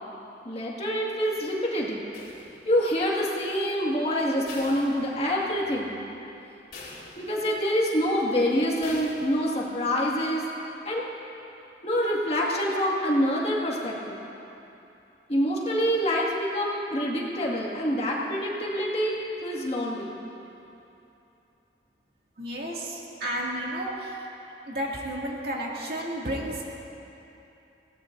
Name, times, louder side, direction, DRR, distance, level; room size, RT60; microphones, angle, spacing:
voice 1, 0.5-2.0 2.7-5.9 7.2-10.4 10.8-11.1 11.8-14.2 15.3-20.1, equal, 35° left, -4 dB, 2.0 m, -26 dB
sound 1, 2.1-3.0 4.5-5.6 6.0-6.1 6.7-7.6 8.8-9.6, left 3 dB, 55° left, 3.5 m, -44 dB
voice 2, 22.4-24.3 24.7-26.7, right 1 dB, 60° right, -3 dB, 2.3 m, -32 dB
22.5 x 17.5 x 2.7 m, 2.9 s
head